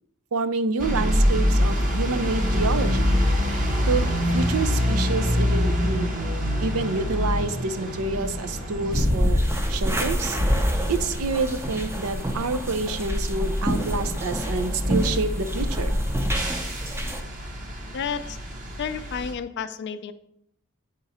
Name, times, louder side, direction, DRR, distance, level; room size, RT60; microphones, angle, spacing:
voice 1, 0.3-3.2 3.9-6.1 6.6-9.4 9.7-10.4 10.9-16.0, right 3 dB, 85° right, 10 dB, 0.5 m, -28 dB
sound 1, 0.8-19.3, equal, 40° right, 1.0 m, -26 dB
sound 2, 8.9-17.2, equal, 10° right, 0.5 m, -26 dB
voice 2, 17.9-18.4 18.8-20.1, left 7 dB, 55° left, 12 dB, 0.4 m, -31 dB
8.9 x 3.8 x 4.2 m, 0.76 s
head